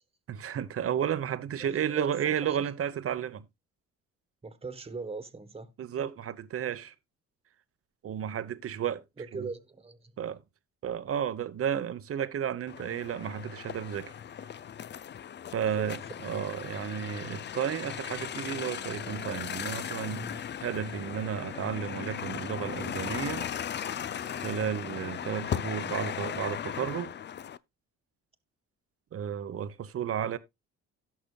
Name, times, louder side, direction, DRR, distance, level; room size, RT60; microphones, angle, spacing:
voice 1, 0.3-3.4 5.8-6.9 8.0-9.0 9.4-9.5 10.2-10.4 10.8-14.1 15.5-23.5 24.4-27.1 29.1-30.4, right 9 dB, 50° right, 0.9 m, -33 dB
voice 2, 1.6-2.6 4.4-5.7 9.2-10.1 15.5-15.9 20.1-20.4, right 4 dB, 20° right, 1.4 m, -41 dB
sound 1, 12.7-27.6, left 9 dB, 35° left, 0.5 m, -37 dB
17.0 x 6.1 x 2.3 m
cardioid pair, 90°, 30 cm